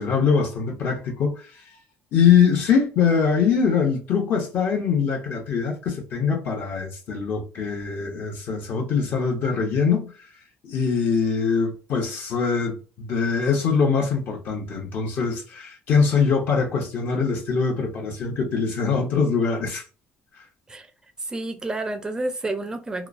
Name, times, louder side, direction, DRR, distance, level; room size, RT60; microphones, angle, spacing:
voice 1, 0.0-1.6 2.1-10.1 10.6-19.8, left 6 dB, 60° left, 0.9 m, -23 dB
voice 2, 21.2-23.1, right 2 dB, 20° right, 0.4 m, -29 dB
3.0 x 2.0 x 2.4 m
cardioid pair, 105°, 4 cm